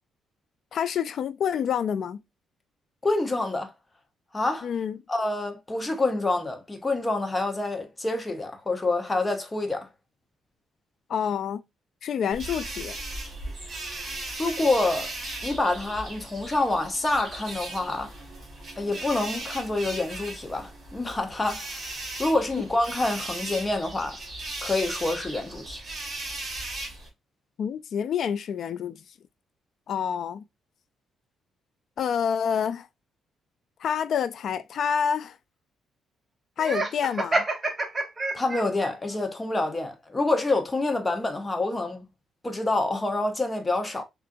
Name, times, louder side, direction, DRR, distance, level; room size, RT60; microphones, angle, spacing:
voice 1, 0.7-2.2 4.6-5.0 11.1-11.6 12.0-13.0 27.6-29.0 29.9-30.4 32.0-32.9 33.8-35.4 36.6-37.5, left 7 dB, 60° left, 0.3 m, -27 dB
voice 2, 3.0-3.7 4.3-4.7 5.1-9.9 14.4-15.1 15.4-18.1 18.8-21.8 22.2-24.2 24.6-25.8 38.3-42.0 42.4-44.0, left 2 dB, 20° left, 0.8 m, -27 dB
sound 1, 12.3-27.1, right 2 dB, 45° right, 1.6 m, -37 dB
Laughter, 36.6-38.9, right 2 dB, 25° right, 0.7 m, -28 dB
3.6 x 2.4 x 2.5 m
cardioid pair, 90°, 0 cm